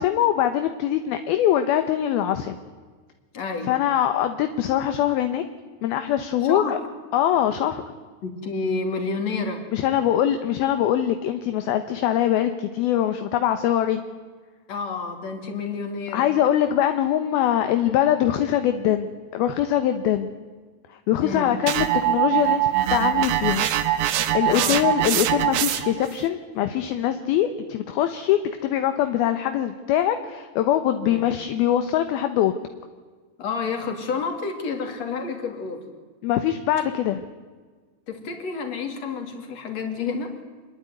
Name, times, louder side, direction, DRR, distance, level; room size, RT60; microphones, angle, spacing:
voice 1, 0.0-2.6 3.7-5.4 5.8-6.8 7.1-7.8 9.7-14.0 16.1-20.3 20.9-23.7 24.3-32.5 36.2-37.2, left 11 dB, 75° left, 8 dB, 2.8 m, -23 dB
voice 2, 3.3-3.7 6.4-6.7 8.2-9.7 14.7-16.3 21.2-21.6 24.4-24.8 31.1-31.2 33.4-35.8 38.1-40.4, left 4 dB, 40° left, 4 dB, 4.1 m, -29 dB
sound 1, 21.7-26.1, right 12 dB, 75° right, 3.0 m, -23 dB
26.0 x 21.5 x 9.5 m, 1.4 s
omnidirectional pair, 4.8 m